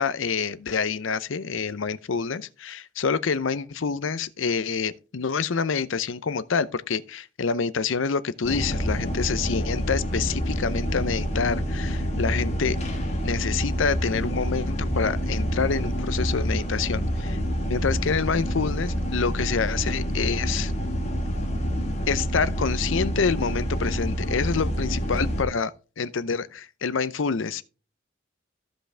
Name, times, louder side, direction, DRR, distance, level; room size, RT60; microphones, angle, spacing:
voice 1, 0.0-12.8 13.2-17.4 17.7-20.7 22.1-25.7 26.0-27.6, left 5 dB, 75° left, 0.6 m, -27 dB
sound 1, 8.4-25.4, equal, 35° left, 1.6 m, -27 dB
14.5 x 5.2 x 3.3 m
head